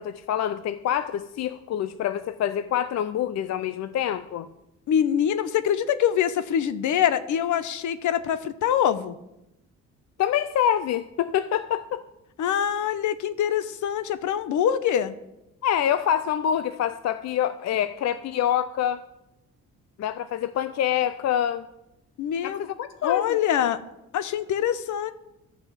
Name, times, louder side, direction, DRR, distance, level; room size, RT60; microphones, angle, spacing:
voice 1, 0.0-4.5 10.2-12.0 15.6-19.0 20.0-21.7 22.4-23.4, left 10 dB, 60° left, 13 dB, 0.6 m, -26 dB
voice 2, 4.9-9.2 12.4-15.1 22.2-22.6 23.0-23.8 24.1-25.1, left 9 dB, 75° left, 13 dB, 0.9 m, -24 dB
13.0 x 6.7 x 7.3 m, 0.89 s
cardioid pair, 90°, 30 cm